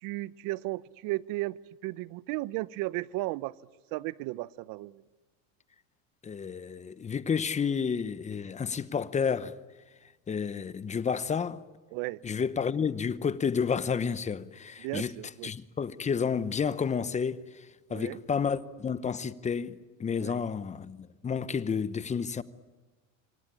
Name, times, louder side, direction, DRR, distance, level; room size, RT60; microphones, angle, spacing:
voice 1, 0.0-3.5 3.9-5.0 11.9-12.2 14.8-15.5 17.9-18.2 20.2-20.4, right 19 dB, 55° right, 0.8 m, -35 dB
voice 2, 6.2-9.5 10.3-11.6 12.2-15.1 15.4-17.4 17.9-21.0 21.2-22.4, left 6 dB, 15° left, 0.9 m, -30 dB
26.5 x 24.0 x 8.8 m
supercardioid pair, 120°, 41 cm